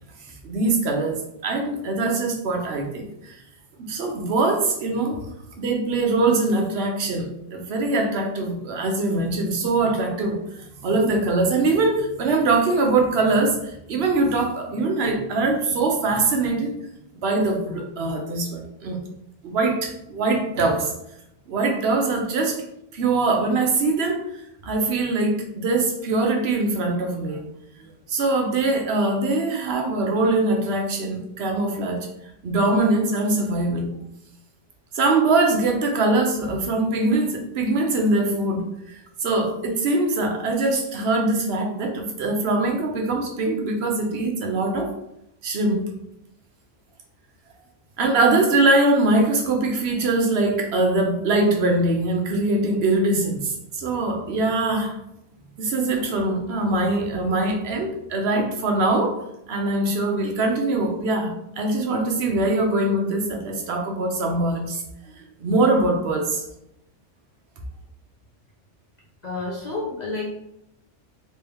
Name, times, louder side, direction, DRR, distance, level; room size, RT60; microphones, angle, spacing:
voice 1, 0.4-3.4 3.8-5.2 5.6-16.7 17.1-19.0 19.4-20.9 21.5-22.6 22.9-24.2 24.6-27.4 27.8-32.1 32.4-33.9 34.9-44.9 45.4-45.8 48.0-55.0 55.6-59.1 59.5-64.8 65.4-66.4, right 2 dB, 60° right, 2 dB, 0.9 m, -22 dB
voice 2, 69.2-70.4, left 3 dB, 45° left, -5 dB, 0.7 m, -30 dB
3.3 x 3.0 x 3.3 m, 0.82 s
omnidirectional pair, 1.2 m